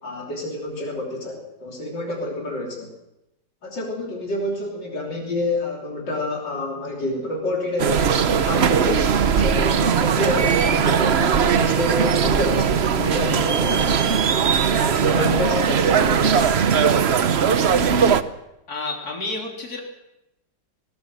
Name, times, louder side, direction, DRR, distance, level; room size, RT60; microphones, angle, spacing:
voice 1, 0.0-2.9 3.6-14.3 14.7-16.4, left 1 dB, 70° left, -1 dB, 3.9 m, -28 dB
sound 1, 7.8-18.2, right 7 dB, 50° right, 0.9 m, -19 dB
voice 2, 18.7-19.8, left 3 dB, 55° left, 1 dB, 4.2 m, -30 dB
20.0 x 19.5 x 7.6 m, 0.89 s
omnidirectional pair, 2.0 m